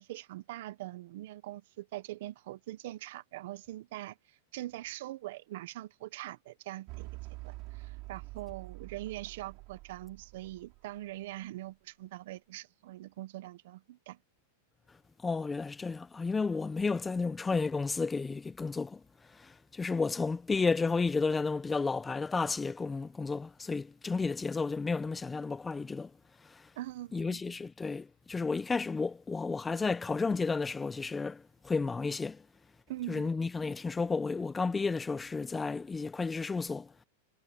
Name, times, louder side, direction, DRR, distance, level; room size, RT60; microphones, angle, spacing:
voice 1, 0.0-7.1 7.4-14.2 26.8-27.5 32.9-33.3, right 15 dB, 65° right, 1.1 m, -43 dB
sound 1, 6.9-11.4, right 23 dB, 45° right, 3.9 m, -46 dB
voice 2, 15.2-19.0 19.3-26.1 26.4-26.7 27.1-32.4 33.1-36.9, left 4 dB, 10° left, 0.8 m, -32 dB
supercardioid pair, 135°, 0 cm